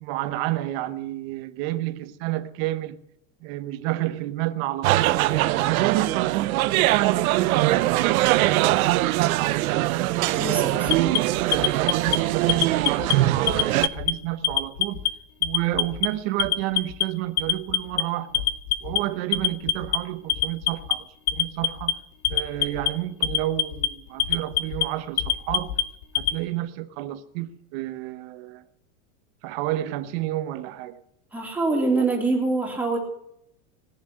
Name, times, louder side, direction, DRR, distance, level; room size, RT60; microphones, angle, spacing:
voice 1, 0.0-3.0 3.4-5.2 5.5-10.9 11.7-15.0 15.4-18.4 18.8-21.9 22.3-25.7 26.2-28.6 29.4-31.0, right 15 dB, 45° right, 1.0 m, -30 dB
sound 1, 4.8-13.9, right 16 dB, 70° right, 0.8 m, -22 dB
voice 2, 10.4-11.0 31.3-33.0, right 3 dB, 5° right, 3.0 m, -24 dB
Alarm, 10.9-12.2 12.5-13.1 13.5-14.1 14.4-15.1 15.4-16.1 16.4-17.0 17.4-18.0 18.3-19.0 19.3-20.0 20.3-20.9 21.3-21.9 22.2-22.9 23.2-23.9 24.2-24.8 25.2-26.4, left 12 dB, 75° left, 2.0 m, -23 dB
19.0 x 7.4 x 9.8 m
supercardioid pair, 165°, 43 cm